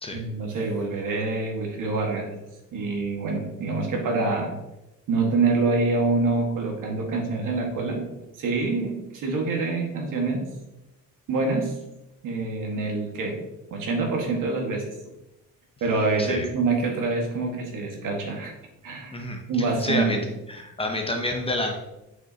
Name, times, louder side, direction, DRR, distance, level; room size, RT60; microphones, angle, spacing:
voice 1, 0.1-2.3 2.7-4.5 5.1-8.0 8.4-10.4 11.3-11.7 12.2-13.4 13.7-14.9 15.8-18.5 18.8-19.2 19.5-20.2, right 3 dB, 70° right, 2 dB, 1.7 m, -26 dB
voice 2, 19.1-20.2 20.5-21.7, left 2 dB, 15° left, 2 dB, 0.8 m, -29 dB
8.0 x 6.0 x 2.8 m, 0.95 s
cardioid pair, 155°, 33 cm